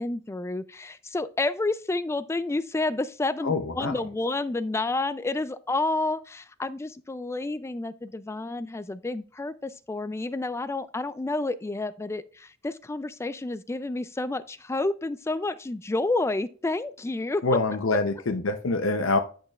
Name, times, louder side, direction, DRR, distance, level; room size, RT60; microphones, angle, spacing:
voice 1, 0.0-17.4, left 2 dB, 15° left, 0.3 m, -30 dB
voice 2, 3.4-4.1 17.4-19.2, left 3 dB, 70° left, 0.6 m, -25 dB
9.9 x 6.5 x 2.4 m
head